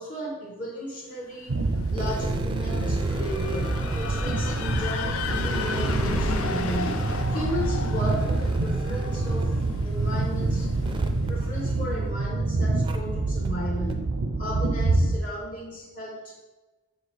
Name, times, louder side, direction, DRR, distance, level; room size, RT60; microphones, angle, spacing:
voice 1, 0.0-1.5 1.9-10.7 11.3-16.4, equal, 35° left, -4 dB, 0.9 m, -35 dB
sound 1, 1.4-11.2, left 5 dB, 65° left, 0.5 m, -35 dB
sound 2, 1.5-15.2, right 2 dB, 85° right, 0.6 m, -27 dB
sound 3, 1.9-12.3 12.8-13.0 13.4-13.5 13.9-14.0, right 2 dB, 20° right, 0.4 m, -36 dB
6.4 x 4.7 x 3.3 m, 1.1 s
head